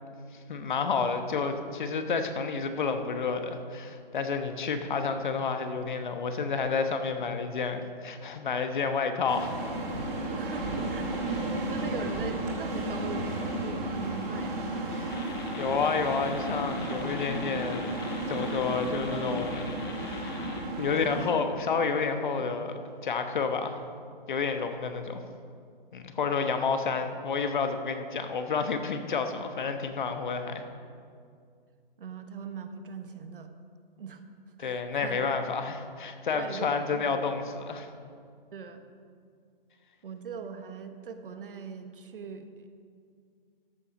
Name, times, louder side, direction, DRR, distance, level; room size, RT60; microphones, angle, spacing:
voice 1, 0.3-9.5 14.9-15.2 15.6-18.0 18.3-19.8 20.1-20.5 20.8-22.7 23.0-23.8 24.3-25.2 25.9-30.6 34.6-37.9, left 5 dB, 55° left, 7 dB, 1.1 m, -30 dB
sound 1, 9.3-21.3, right 1 dB, 25° right, 2.7 m, -33 dB
voice 2, 10.3-11.0 11.7-13.4 13.6-14.7 32.0-33.5 34.0-34.2 34.6-35.2 36.3-37.1 38.5-38.8 40.0-42.7, right 5 dB, 65° right, 7 dB, 1.1 m, -40 dB
sound 2, 15.1-20.6, left 4 dB, 25° left, 0.8 m, -44 dB
13.5 x 7.2 x 5.3 m, 2.3 s
hypercardioid pair, 165°, 29 cm